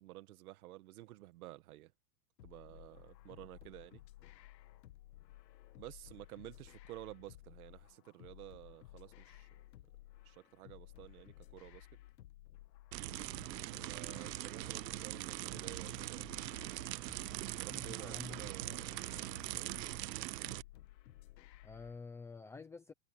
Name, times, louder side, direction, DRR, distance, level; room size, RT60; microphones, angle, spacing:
voice 1, 0.0-1.9 2.4-4.0 5.8-9.5 10.2-11.9 13.9-16.3 17.6-20.0, right 16 dB, 60° right, 1.7 m, -52 dB
sound 1, 2.4-22.0, left 15 dB, 85° left, 1.7 m, -57 dB
sound 2, 12.9-20.6, right 17 dB, 75° right, 0.8 m, -42 dB
voice 2, 17.7-18.5 21.6-22.9, left 4 dB, 5° left, 0.7 m, -49 dB
supercardioid pair, 175°, 50 cm